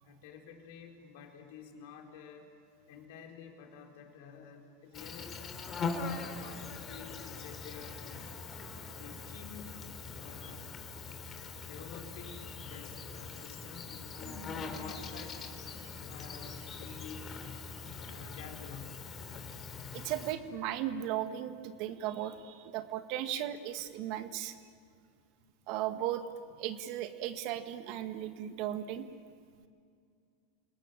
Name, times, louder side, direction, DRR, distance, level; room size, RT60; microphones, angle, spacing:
voice 1, 0.0-2.5 2.9-5.4 5.9-8.3 8.9-9.6 10.1-10.8 11.6-15.4 16.1-17.5 18.1-19.2, left 6 dB, 65° left, 2 dB, 4.3 m, -50 dB
Insect, 4.9-20.3, left 4 dB, 30° left, 3.5 m, -42 dB
voice 2, 19.9-24.6 25.7-29.0, right 11 dB, 55° right, 9 dB, 1.8 m, -36 dB
28.0 x 19.5 x 9.0 m, 2.3 s
hypercardioid pair, 95°, 0 cm